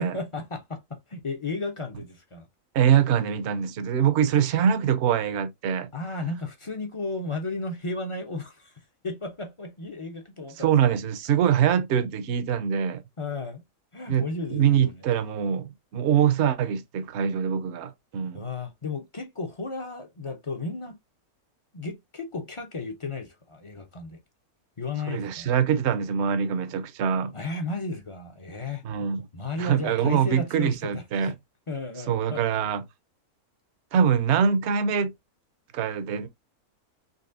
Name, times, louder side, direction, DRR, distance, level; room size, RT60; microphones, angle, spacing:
voice 1, 0.0-2.5 5.9-8.7 9.0-11.0 13.2-13.6 13.9-15.0 18.3-21.0 21.7-24.2 24.8-25.5 27.3-28.8 29.3-31.3 31.7-32.4, left 3 dB, 40° left, 0.4 m, -34 dB
voice 2, 2.7-5.9 10.6-13.0 14.1-18.4 25.1-27.3 28.8-29.3 29.6-31.3 32.1-32.8 33.9-35.1 35.7-36.3, right 8 dB, 60° right, 0.8 m, -24 dB
4.0 x 3.1 x 2.5 m
omnidirectional pair, 1.6 m